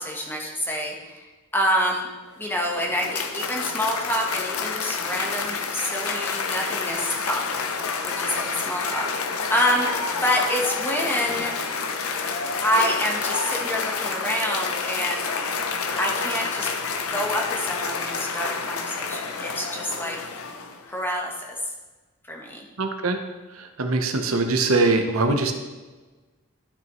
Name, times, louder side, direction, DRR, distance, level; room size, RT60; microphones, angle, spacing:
voice 1, 0.0-2.1 2.4-7.5 8.0-9.9 10.2-11.6 12.6-15.3 16.0-16.7 17.1-20.2 20.9-21.6 22.3-22.7, equal, 10° left, 0 dB, 1.1 m, -27 dB
Cheering / Applause, 2.3-21.0, left 5 dB, 85° left, 0.7 m, -29 dB
voice 2, 22.8-23.2 23.5-25.5, right 3 dB, 75° right, 5 dB, 0.8 m, -22 dB
11.5 x 5.9 x 3.1 m, 1.3 s
head